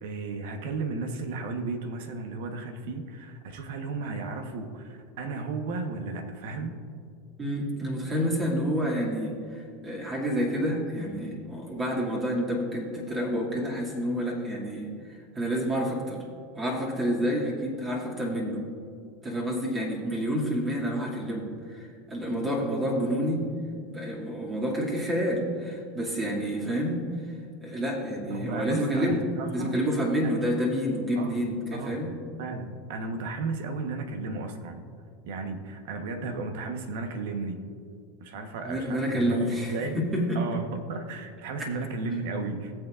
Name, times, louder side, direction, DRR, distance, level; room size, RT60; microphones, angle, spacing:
voice 1, 0.0-6.8 28.3-29.8 30.2-30.4 31.2-31.4 31.7-32.1 32.4-34.9 35.2-37.7 38.2-40.1 40.3-42.7, right 3 dB, 70° right, 6 dB, 1.2 m, -34 dB
voice 2, 7.4-16.2 16.6-18.6 19.2-23.5 23.9-27.1 27.6-29.2 29.5-32.1 38.6-40.4 41.6-41.7, equal, 25° right, -3 dB, 2.4 m, -29 dB
18.5 x 7.6 x 2.5 m, 2.3 s
hypercardioid pair, 105°, 0 cm